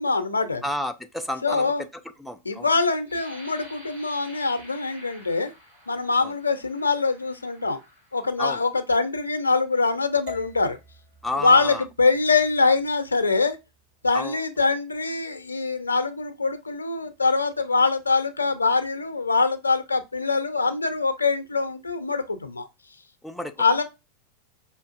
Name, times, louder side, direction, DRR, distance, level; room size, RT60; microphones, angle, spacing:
voice 1, 0.0-0.6 1.4-1.8 2.4-5.5 5.9-7.8 8.1-10.8 11.4-13.6 14.0-22.7 23.6-23.8, left 4 dB, 80° left, 0.5 m, -23 dB
voice 2, 0.6-1.7 2.2-2.7 6.2-6.3 8.4-8.6 11.2-11.9 14.1-14.4 23.2-23.5, left 1 dB, ahead, 0.4 m, -31 dB
sound 1, 3.0-8.7 9.3-9.5 10.0-10.4, right 1 dB, 70° right, 2.2 m, -49 dB
sound 2, 10.3-14.4, left 2 dB, 50° right, 1.8 m, -48 dB
5.1 x 2.4 x 2.4 m
figure-of-eight pair, 90°, 0 cm